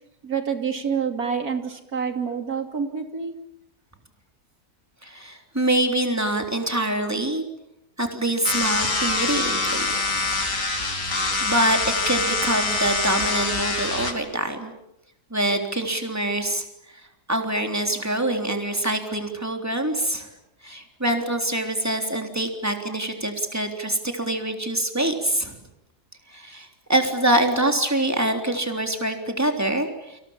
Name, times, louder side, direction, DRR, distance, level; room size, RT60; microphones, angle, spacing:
voice 1, 0.2-3.3, right 6 dB, 70° right, 6 dB, 3.3 m, -27 dB
voice 2, 5.0-7.4 8.0-9.9 10.1-10.3 11.4-14.7 15.3-16.7 17.3-20.3 20.6-25.6 26.3-30.2, right 1 dB, 10° right, 4 dB, 3.6 m, -25 dB
sound 1, 8.4-14.1, left 3 dB, 55° left, 3.7 m, -25 dB
30.0 x 26.5 x 7.4 m, 0.85 s
omnidirectional pair, 1.6 m